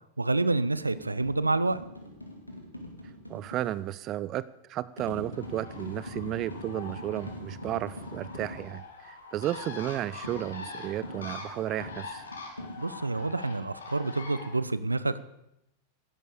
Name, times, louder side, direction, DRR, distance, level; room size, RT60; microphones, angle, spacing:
voice 1, 0.2-1.8 12.8-15.2, right 2 dB, 80° right, 16 dB, 0.6 m, -28 dB
sound 1, 0.8-3.7 5.0-8.7 10.2-13.2, left 1 dB, 85° left, 2.2 m, -42 dB
voice 2, 3.3-4.4 4.7-12.2, right 13 dB, 35° right, 18 dB, 0.5 m, -33 dB
Bird, 5.3-14.5, left 4 dB, 70° left, 2.4 m, -44 dB
12.5 x 11.0 x 6.8 m, 0.84 s
figure-of-eight pair, 90°, 0 cm